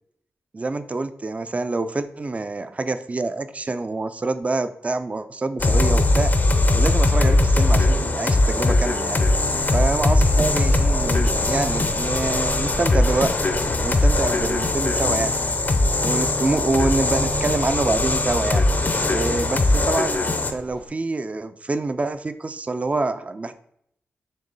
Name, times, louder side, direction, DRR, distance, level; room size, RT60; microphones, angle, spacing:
voice 1, 0.5-6.3 6.7-9.2 9.7-13.4 13.8-15.3 16.0-18.6 19.1-23.5, right 3 dB, 30° right, 10 dB, 0.3 m, -26 dB
sound 1, 5.6-20.5, left 2 dB, 40° left, 0.5 m, -20 dB
Engine, 9.2-20.9, equal, 85° right, 1.6 m, -32 dB
4.3 x 3.0 x 3.1 m, 0.70 s
cardioid pair, 50°, 4 cm